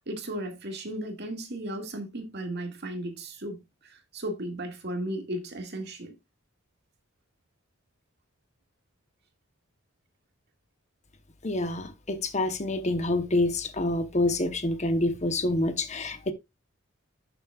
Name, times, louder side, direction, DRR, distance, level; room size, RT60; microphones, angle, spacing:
voice 1, 0.0-6.1, right 1 dB, 55° right, 2.0 m, -35 dB
voice 2, 11.4-16.3, left 2 dB, 35° left, 0.9 m, -27 dB
11.5 x 7.0 x 2.3 m
head